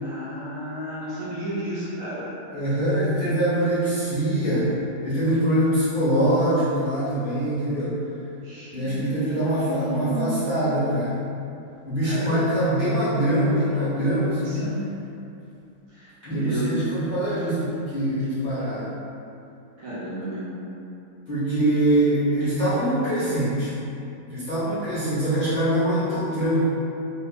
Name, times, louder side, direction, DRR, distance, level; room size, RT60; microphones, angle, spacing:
voice 1, 0.0-2.3 8.4-10.5 12.0-12.5 14.4-14.9 15.9-16.7 19.8-20.5, equal, 65° right, -9 dB, 0.9 m, -33 dB
voice 2, 2.5-4.7 5.0-7.9 8.7-11.2 11.9-14.7 16.2-18.9 21.3-23.7 24.3-26.6, right 1 dB, 50° left, -13 dB, 0.6 m, -23 dB
2.7 x 2.6 x 3.4 m, 2.7 s
omnidirectional pair, 1.8 m